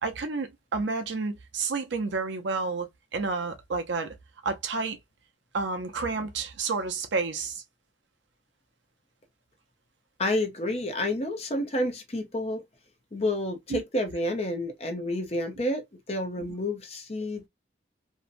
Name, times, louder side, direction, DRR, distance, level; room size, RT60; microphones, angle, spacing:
voice 1, 0.0-4.1 4.4-5.0 5.5-7.6 13.7-13.8, right 4 dB, 80° right, 0.6 m, -30 dB
voice 2, 10.2-12.6 13.1-17.5, left 1 dB, 35° left, 0.6 m, -29 dB
2.6 x 2.1 x 2.5 m
head